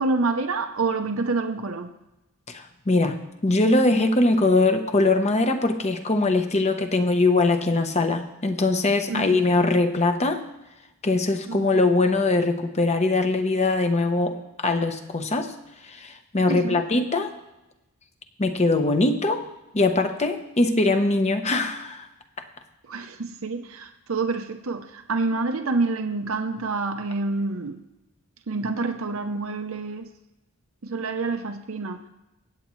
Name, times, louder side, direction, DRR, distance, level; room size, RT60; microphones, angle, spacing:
voice 1, 0.0-1.9 9.1-9.4 11.5-11.7 16.5-16.8 22.9-27.8 28.5-30.1 30.8-32.0, right 3 dB, 75° right, 7 dB, 0.7 m, -27 dB
voice 2, 2.5-3.2 3.4-10.4 11.0-15.5 15.9-17.3 18.4-19.4 19.7-22.1, left 2 dB, 30° left, 7 dB, 0.9 m, -22 dB
24.5 x 8.6 x 3.1 m, 0.97 s
head